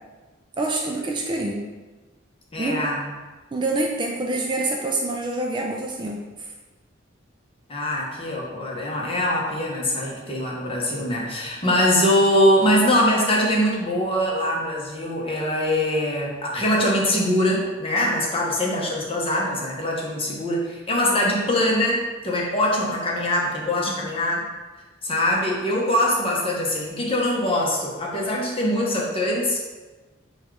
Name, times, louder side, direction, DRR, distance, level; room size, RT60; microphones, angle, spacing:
voice 1, 0.6-1.7 2.6-2.9 3.5-6.2 23.9-24.1, right 2 dB, 25° right, 0 dB, 0.3 m, -26 dB
voice 2, 2.5-3.1 7.7-24.4 25.0-29.6, left 1 dB, 30° left, -3 dB, 0.9 m, -23 dB
4.2 x 2.4 x 4.5 m, 1.2 s
head